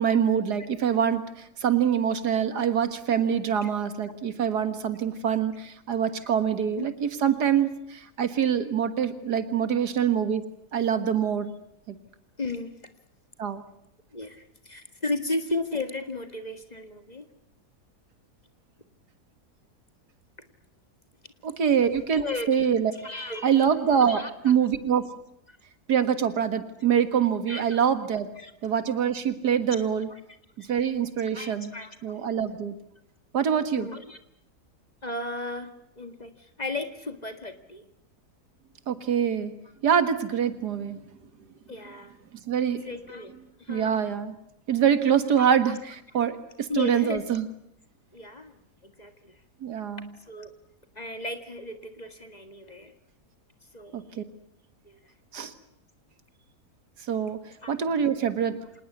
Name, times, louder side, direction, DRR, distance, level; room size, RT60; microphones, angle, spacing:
voice 1, 0.0-10.4 10.7-11.5 11.9-12.0 13.4-13.6 21.4-22.9 23.4-25.1 25.9-28.3 28.6-30.1 30.6-31.7 32.0-32.8 33.3-33.9 38.9-39.5 39.8-41.0 42.5-42.8 43.7-44.4 44.7-47.5 49.6-50.1 53.9-54.2 55.3-55.5 57.1-57.4 57.7-58.6, right 8 dB, 85° right, 11 dB, 2.2 m, -25 dB
voice 2, 12.4-12.7 14.1-17.3 22.1-22.5 22.9-23.7 24.0-24.3 25.5-25.6 27.5-27.8 28.4-28.5 29.8-29.9 30.1-30.2 31.3-32.2 33.8-34.2 35.0-37.9 41.7-42.1 42.8-43.3 43.6-44.0 45.4-45.5 46.7-47.3 48.1-49.4 50.3-50.5 51.0-52.9 53.7-54.1 54.8-55.1 57.6-57.8, left 2 dB, 25° left, 8 dB, 1.9 m, -35 dB
26.5 x 19.0 x 9.5 m, 0.77 s
omnidirectional pair, 1.7 m